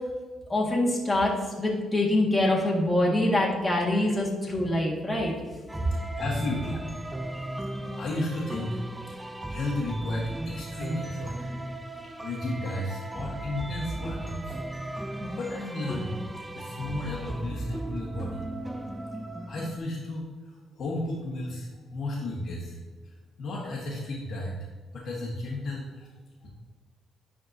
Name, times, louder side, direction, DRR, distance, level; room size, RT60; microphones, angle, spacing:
voice 1, 0.5-5.3, left 1 dB, 15° left, -3 dB, 1.8 m, -25 dB
sound 1, 5.7-19.8, right 1 dB, 10° right, 0.4 m, -36 dB
voice 2, 6.2-6.8 7.5-7.6 8.0-11.5 12.2-14.6 14.9-16.1 16.5-18.4 19.5-22.8 23.4-24.7 24.9-26.1 26.4-26.5, left 2 dB, 65° left, -6 dB, 1.5 m, -34 dB
10.5 x 4.4 x 2.7 m, 1.4 s
cardioid pair, 90°, 0 cm